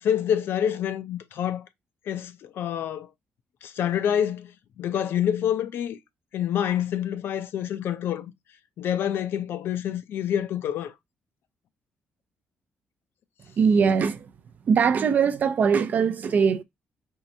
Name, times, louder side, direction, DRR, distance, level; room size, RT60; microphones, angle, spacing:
voice 1, 0.0-1.7 2.1-3.1 3.6-6.0 6.3-8.3 8.8-10.9, left 9 dB, 65° left, 0.5 m, -27 dB
voice 2, 13.6-14.3 14.7-16.6, right 6 dB, 40° right, 0.4 m, -21 dB
4.5 x 3.2 x 2.7 m
cardioid pair, 165°, 4 cm